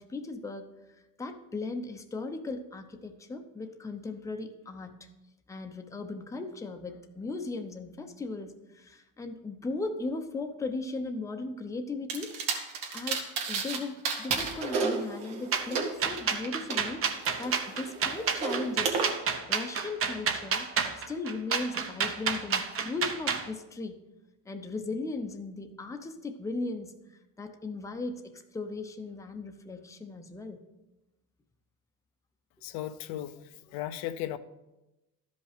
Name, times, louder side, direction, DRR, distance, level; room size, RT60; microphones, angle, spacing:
voice 1, 0.0-5.1 5.5-12.6 12.9-19.0 19.3-20.7 21.1-24.0 24.4-30.6, left 3 dB, 10° left, 0.6 m, -37 dB
sound 1, 12.1-13.8 14.0-16.8 17.2-19.0, right 5 dB, 80° right, 1.8 m, -32 dB
sound 2, 15.5-23.5, right 6 dB, 35° right, 0.8 m, -30 dB
voice 2, 32.6-34.4, left 12 dB, 75° left, 0.7 m, -36 dB
12.5 x 5.3 x 5.0 m
cardioid pair, 130°, 39 cm